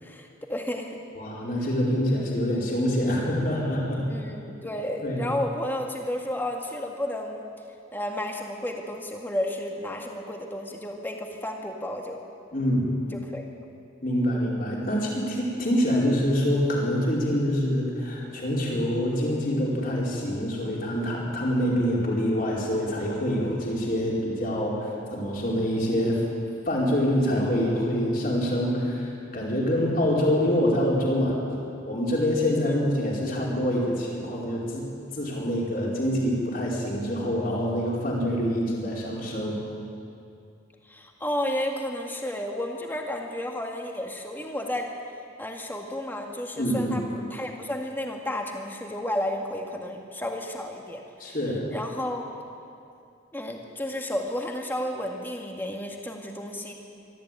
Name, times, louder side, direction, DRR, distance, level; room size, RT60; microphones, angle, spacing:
voice 1, 0.0-1.0 4.1-7.4 7.9-12.2 13.1-13.5 32.4-32.8 40.8-44.9 45.4-51.4 51.7-52.3 53.3-56.7, left 1 dB, 10° left, 1 dB, 1.9 m, -32 dB
voice 2, 1.2-4.0 5.0-5.2 12.5-12.9 14.0-26.2 26.6-31.4 31.9-34.9 35.1-39.6 46.6-47.0 51.2-51.6, equal, 45° left, -4 dB, 4.7 m, -25 dB
23.0 x 14.0 x 9.1 m, 2.6 s
head